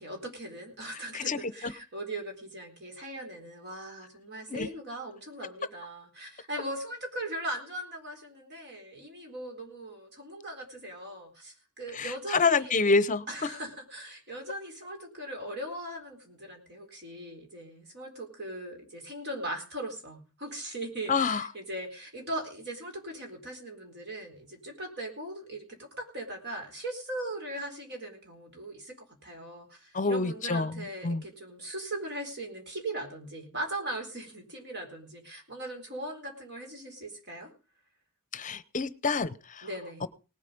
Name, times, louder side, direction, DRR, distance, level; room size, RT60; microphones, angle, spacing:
voice 1, 0.0-12.8 13.3-37.5 39.6-40.0, right 1 dB, 50° right, 3 dB, 4.0 m, -39 dB
voice 2, 12.0-13.2 21.1-21.4 29.9-30.7 31.0-31.2 38.3-39.6 40.0-40.1, left 4 dB, 35° left, 17 dB, 0.8 m, -27 dB
18.5 x 8.1 x 5.2 m, 0.34 s
head